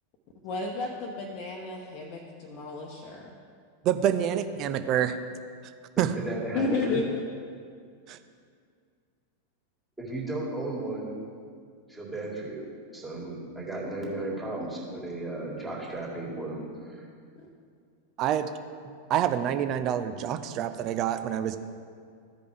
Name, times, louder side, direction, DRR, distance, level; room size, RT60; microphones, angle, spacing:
voice 1, 0.4-3.3 6.5-7.2 17.4-17.5, left 3 dB, 40° left, -2 dB, 0.9 m, -32 dB
voice 2, 3.8-5.2 5.6-5.7 6.0-6.1 8.1-8.2 18.2-18.4 19.1-21.6, right 10 dB, 35° right, 10 dB, 0.5 m, -27 dB
voice 3, 6.0-7.0 10.0-11.1 11.9-12.6 12.9-16.6 16.9-17.0, right 2 dB, 10° right, -4 dB, 2.0 m, -34 dB
14.5 x 5.1 x 3.4 m, 2.2 s
figure-of-eight pair, 90°, 0 cm